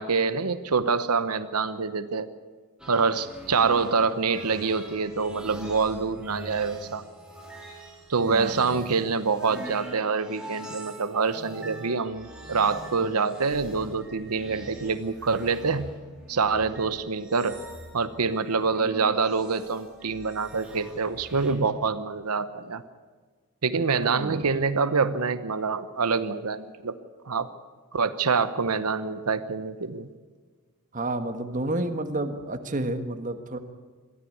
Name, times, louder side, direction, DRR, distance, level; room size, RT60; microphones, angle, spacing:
voice 1, 0.0-2.3 2.9-7.0 8.1-15.9 16.3-17.6 17.9-22.8 23.6-26.9 27.2-27.5 27.9-30.1, right 4 dB, 85° right, 12 dB, 0.9 m, -26 dB
sound 1, 2.8-21.5, right 1 dB, 5° right, 3.4 m, -44 dB
voice 2, 8.3-8.8 23.8-23.9 24.2-24.4 30.9-33.6, right 1 dB, 35° right, 8 dB, 1.5 m, -30 dB
22.5 x 14.5 x 8.6 m, 1.5 s
head